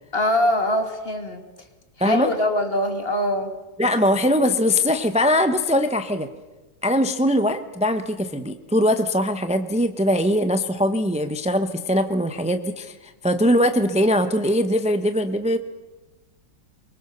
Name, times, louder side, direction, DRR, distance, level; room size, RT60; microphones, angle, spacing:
voice 1, 0.1-1.4 2.0-3.5, left 1 dB, 30° left, 6 dB, 2.4 m, -23 dB
voice 2, 3.8-6.3 6.8-15.6, equal, 10° right, 9 dB, 0.4 m, -21 dB
24.5 x 22.5 x 6.8 m, 1.1 s
omnidirectional pair, 2.1 m